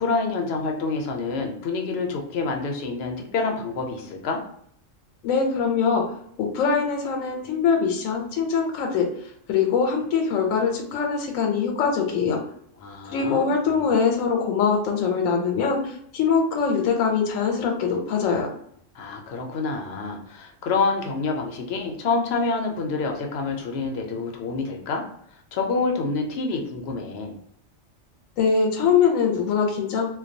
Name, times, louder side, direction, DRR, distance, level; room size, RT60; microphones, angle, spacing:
voice 1, 0.0-4.4 12.8-13.8 18.9-25.0 25.5-27.4, left 4 dB, 65° left, 2 dB, 0.7 m, -27 dB
voice 2, 5.2-6.0 6.4-9.1 9.5-12.4 13.1-18.5 28.4-30.0, left 6 dB, 90° left, 2 dB, 1.0 m, -22 dB
2.2 x 2.2 x 2.5 m, 0.67 s
omnidirectional pair, 1.3 m